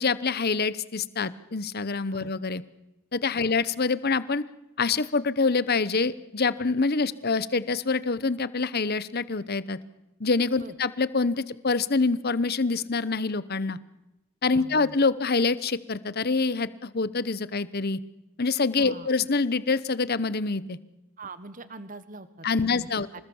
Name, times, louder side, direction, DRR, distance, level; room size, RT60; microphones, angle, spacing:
voice 1, 0.0-2.6 3.1-4.4 4.8-9.8 10.2-13.8 14.4-18.0 18.4-20.8 22.4-23.2, left 4 dB, 45° left, 17 dB, 0.9 m, -26 dB
voice 2, 14.5-15.0 18.8-19.1 21.2-23.2, right 3 dB, 35° right, 13 dB, 1.3 m, -43 dB
26.5 x 20.0 x 7.2 m, 0.95 s
head